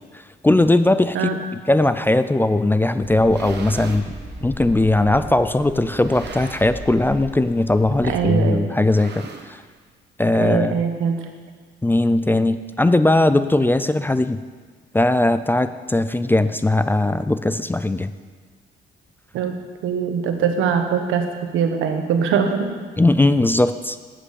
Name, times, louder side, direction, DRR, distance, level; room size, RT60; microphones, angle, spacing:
voice 1, 0.4-1.4 1.7-4.1 4.4-9.6 10.2-10.8 11.8-14.4 14.9-18.1 23.0-24.0, left 2 dB, 10° left, 12 dB, 0.4 m, -19 dB
sound 1, 3.0-8.3, equal, 35° right, 2.6 m, -37 dB
sound 2, 3.3-4.1 4.8-4.9 5.8-6.9 7.2-7.5 7.7-7.8 8.7-9.8, right 5 dB, 55° right, 1.2 m, -39 dB
voice 2, 8.0-8.6 10.4-11.2 19.3-19.6 19.8-22.7, right 6 dB, 90° right, 5 dB, 1.2 m, -22 dB
8.7 x 7.5 x 6.5 m, 1.5 s
cardioid pair, 90°, 20 cm